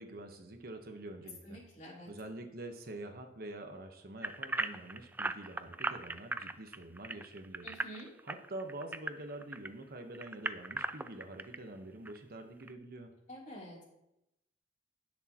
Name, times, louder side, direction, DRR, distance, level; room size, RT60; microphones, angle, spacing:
voice 1, 0.0-1.6 2.1-7.7 8.2-13.1, right 2 dB, 60° right, 5 dB, 1.1 m, -46 dB
voice 2, 1.4-2.1 7.6-8.1 13.3-13.9, equal, 45° left, -3 dB, 3.2 m, -48 dB
sound 1, 4.2-9.7 10.1-11.6 12.1-12.2 12.7-12.8, right 2 dB, 10° right, 0.3 m, -37 dB
18.5 x 6.4 x 3.0 m, 0.87 s
head